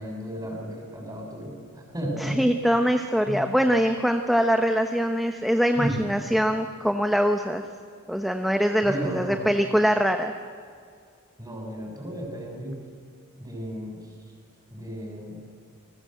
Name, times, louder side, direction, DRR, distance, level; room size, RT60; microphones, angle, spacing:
voice 1, 0.0-2.4 3.3-3.5 5.7-6.0 8.8-9.5 11.4-12.8 13.4-14.1 14.7-15.4, equal, 20° right, 1 dB, 6.6 m, -33 dB
voice 2, 2.2-7.7 8.1-10.3, equal, ahead, 5 dB, 0.9 m, -23 dB
29.5 x 20.0 x 7.8 m, 2.2 s
head